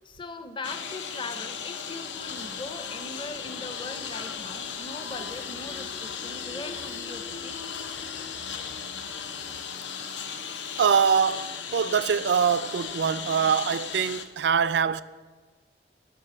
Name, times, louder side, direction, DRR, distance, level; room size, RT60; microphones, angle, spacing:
voice 1, 0.0-7.6 8.0-8.1, left 3 dB, 30° left, 0.6 m, -40 dB
Engine, 0.6-14.3, left 7 dB, 90° left, 0.8 m, -36 dB
sound 1, 2.0-9.6, left 2 dB, 60° left, 1.0 m, -48 dB
voice 2, 10.8-15.0, right 7 dB, 75° right, 0.4 m, -24 dB
10.5 x 6.2 x 6.9 m
head